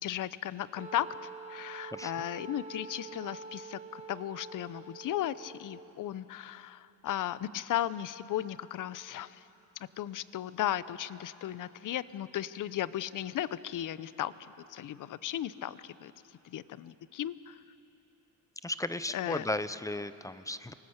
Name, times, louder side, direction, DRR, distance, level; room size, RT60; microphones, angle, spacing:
voice 1, 0.0-9.5 9.8-14.3 14.7-16.1 16.4-17.6 19.1-19.4, left 12 dB, 50° left, 16 dB, 0.7 m, -36 dB
Wind instrument woodwind instrument, 0.8-5.9, right 4 dB, 15° right, 1.5 m, -46 dB
voice 2, 1.9-2.3 18.6-20.7, left 1 dB, 10° left, 13 dB, 0.6 m, -35 dB
26.5 x 19.0 x 8.1 m, 3.0 s
cardioid pair, 110°, 39 cm